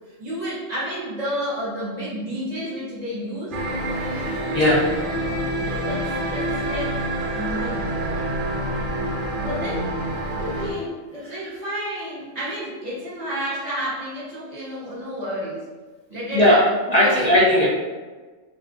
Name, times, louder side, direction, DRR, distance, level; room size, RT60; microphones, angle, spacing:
voice 1, 0.2-3.6 5.6-7.0 7.3-8.4 9.4-9.9 10.4-15.6 16.1-17.6, equal, 35° right, -9 dB, 1.0 m, -31 dB
sound 1, 3.5-10.7, right 1 dB, 60° right, 0.5 m, -27 dB
voice 2, 4.0-4.8 16.3-16.6 16.9-17.7, left 1 dB, 65° left, -7 dB, 0.4 m, -18 dB
2.4 x 2.4 x 3.6 m, 1.3 s
omnidirectional pair, 1.3 m